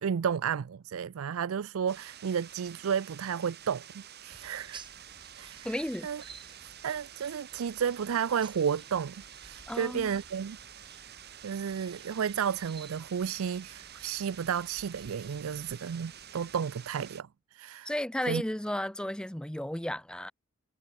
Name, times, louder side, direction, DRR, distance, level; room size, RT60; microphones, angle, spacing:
voice 1, 0.0-4.8 5.4-5.8 6.0-6.2 6.6-10.6 11.4-17.9 18.3-18.4, right 7 dB, 75° right, 0.4 m, -32 dB
sound 1, 1.9-17.2, right 10 dB, 50° right, 2.1 m, -49 dB
sound 2, 4.3-16.5, right 4 dB, 20° right, 4.6 m, -55 dB
voice 2, 5.6-6.1 9.7-10.1 17.9-20.3, left 1 dB, 5° left, 0.5 m, -33 dB
head